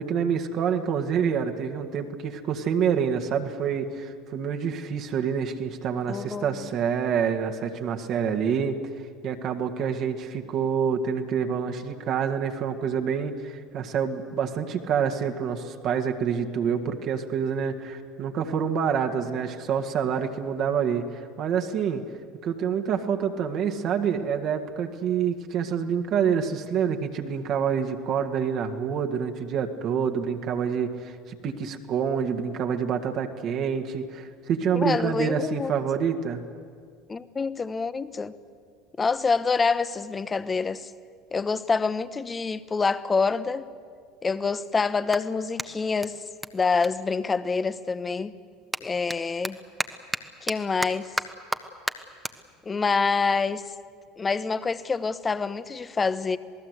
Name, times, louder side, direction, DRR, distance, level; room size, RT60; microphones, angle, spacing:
voice 1, 0.0-8.8 9.2-22.0 22.4-36.4, right 7 dB, 50° right, 2.0 m, -27 dB
voice 2, 6.1-6.7 34.7-35.7 37.1-38.3 39.0-40.9 41.3-43.7 44.2-46.2 46.5-48.4 48.8-49.6 50.4-51.1 52.6-53.6 54.2-56.4, left 4 dB, 25° left, 1.1 m, -26 dB
Clapping, 45.1-47.8 48.1-54.7, right 1 dB, 5° right, 1.4 m, -36 dB
27.0 x 19.0 x 8.2 m
hypercardioid pair, 70°, 0 cm